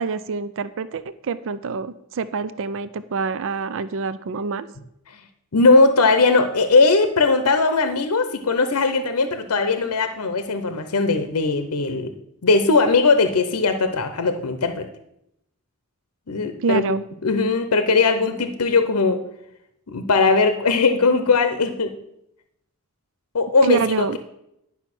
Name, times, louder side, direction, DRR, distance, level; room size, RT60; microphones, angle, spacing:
voice 1, 0.0-4.7 16.6-17.0 23.6-24.2, right 5 dB, 60° right, 14 dB, 0.5 m, -26 dB
voice 2, 5.5-12.1 12.4-14.9 16.3-16.9 17.2-19.2 19.9-21.9 23.3-24.2, left 3 dB, 80° left, 8 dB, 0.8 m, -19 dB
11.0 x 5.6 x 6.0 m, 0.79 s
head